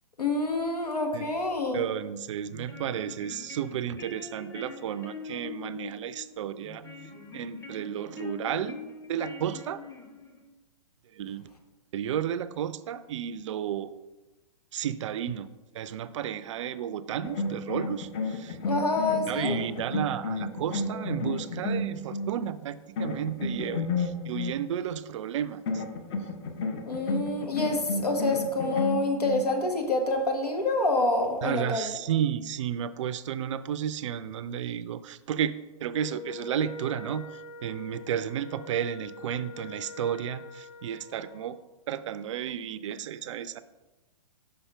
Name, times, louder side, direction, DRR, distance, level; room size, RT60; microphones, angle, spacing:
voice 1, 0.2-1.9 18.7-19.6 26.9-31.9, left 2 dB, 90° left, 3 dB, 1.2 m, -27 dB
voice 2, 1.7-6.8 7.3-8.8 9.1-9.8 11.1-11.5 11.9-13.9 14.7-15.5 15.7-18.6 19.3-25.8 31.4-35.5 35.8-37.2 37.6-41.6 41.9-43.6, right 9 dB, 55° right, 14 dB, 0.4 m, -32 dB
sound 1, 2.4-10.5, left 4 dB, 15° left, 0.6 m, -44 dB
sound 2, 17.2-22.4 23.0-24.6 25.7-29.5, left 2 dB, 40° left, 0.8 m, -32 dB
Wind instrument woodwind instrument, 35.9-41.5, left 4 dB, 65° left, 1.2 m, -44 dB
5.6 x 5.4 x 3.4 m, 1.1 s
figure-of-eight pair, 120°, 19 cm